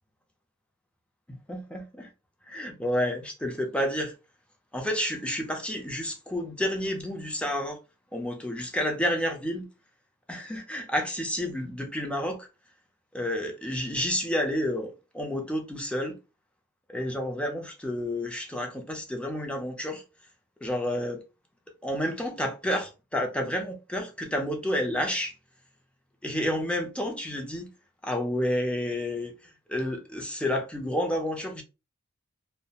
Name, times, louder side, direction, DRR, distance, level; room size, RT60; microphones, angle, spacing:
voice 1, 1.3-2.1 2.5-4.1 4.7-7.8 8.1-9.7 10.3-12.5 13.1-16.2 16.9-20.0 20.6-21.2 21.8-25.3 26.2-27.7 28.0-31.6, left 1 dB, 5° left, 0.5 m, -30 dB
2.4 x 2.1 x 2.8 m
head